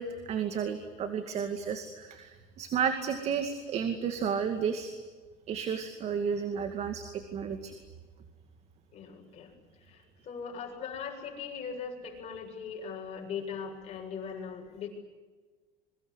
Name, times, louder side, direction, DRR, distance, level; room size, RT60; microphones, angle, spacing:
voice 1, 0.0-4.9 5.5-7.0 7.3-7.7, right 7 dB, 40° right, 7 dB, 2.3 m, -32 dB
voice 2, 8.9-9.5 9.9-14.9, left 6 dB, 40° left, 2 dB, 7.6 m, -40 dB
27.5 x 23.5 x 8.2 m, 1.4 s
cardioid pair, 150°, 17 cm